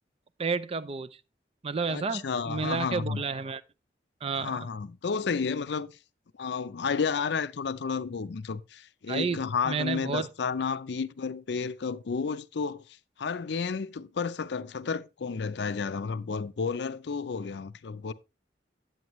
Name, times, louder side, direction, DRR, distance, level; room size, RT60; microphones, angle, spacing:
voice 1, 0.4-1.2 1.6-3.6 4.2-4.7 9.1-10.3, right 4 dB, 35° right, 0.4 m, -31 dB
voice 2, 1.9-3.2 4.4-5.9 6.4-12.8 13.2-18.1, left 5 dB, 70° left, 0.5 m, -31 dB
9.4 x 8.0 x 3.0 m
head